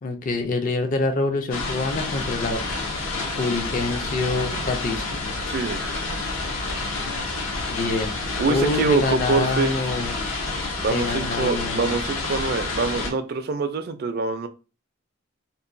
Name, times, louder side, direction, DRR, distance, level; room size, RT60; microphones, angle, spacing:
voice 1, 0.0-2.6 3.4-5.2 7.7-8.2 8.5-10.2 10.9-12.0, left 3 dB, 40° left, 0.4 m, -26 dB
sound 1, 1.5-13.1, left 3 dB, 75° left, 0.7 m, -29 dB
voice 2, 5.5-6.1 8.4-9.8 10.8-14.5, right 3 dB, 50° right, 0.4 m, -25 dB
2.9 x 2.2 x 2.5 m
head